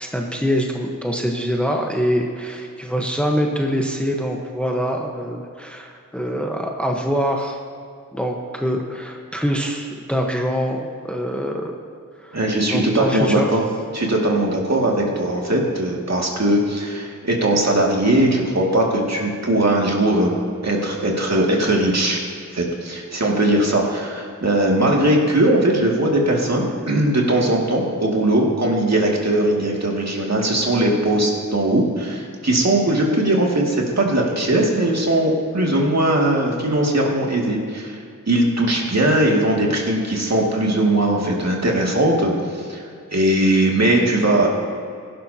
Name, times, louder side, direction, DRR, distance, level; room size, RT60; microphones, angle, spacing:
voice 1, 0.0-7.6 8.1-11.7 12.2-12.4 12.7-13.5, equal, 5° left, 1 dB, 1.2 m, -24 dB
voice 2, 12.3-13.6 13.9-20.3 20.6-22.2 22.5-38.0 38.3-42.8 43.1-44.5, right 1 dB, 50° right, -2 dB, 2.4 m, -19 dB
17.0 x 11.5 x 2.9 m, 2.3 s
wide cardioid pair, 60°, 34 cm